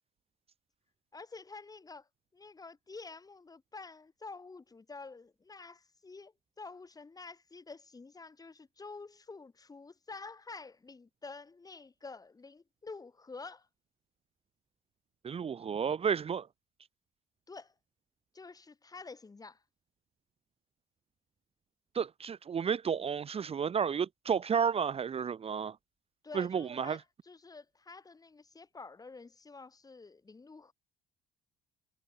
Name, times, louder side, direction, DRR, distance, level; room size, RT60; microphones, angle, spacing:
voice 1, 1.1-13.7 17.5-17.7 18.3-19.6 26.2-30.7, left 4 dB, 20° left, 5.4 m, -49 dB
voice 2, 15.2-16.5 21.9-25.8 26.3-27.0, right 7 dB, 35° right, 1.1 m, -32 dB
cardioid pair, 110°, 17 cm